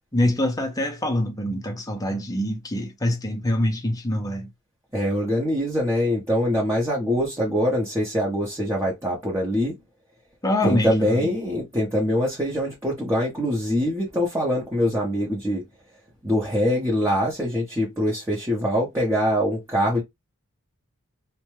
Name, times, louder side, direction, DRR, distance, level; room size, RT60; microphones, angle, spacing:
voice 1, 0.1-4.5 10.4-11.3, left 1 dB, 15° left, 0.6 m, -25 dB
voice 2, 4.9-9.8 10.6-15.6 16.2-20.0, equal, 15° right, 0.8 m, -23 dB
2.7 x 2.2 x 3.1 m
head